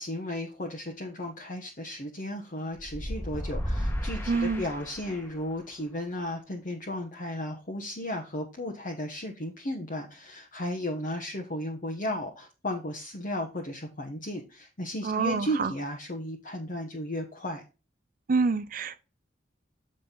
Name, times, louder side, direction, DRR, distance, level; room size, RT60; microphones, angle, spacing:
voice 1, 0.0-17.6, left 1 dB, 45° left, 1.1 m, -34 dB
sound 1, 2.8-5.4, equal, 15° left, 1.5 m, -33 dB
voice 2, 4.3-4.7 15.0-15.7 18.3-19.0, right 4 dB, 45° right, 0.5 m, -27 dB
7.4 x 5.3 x 3.9 m
head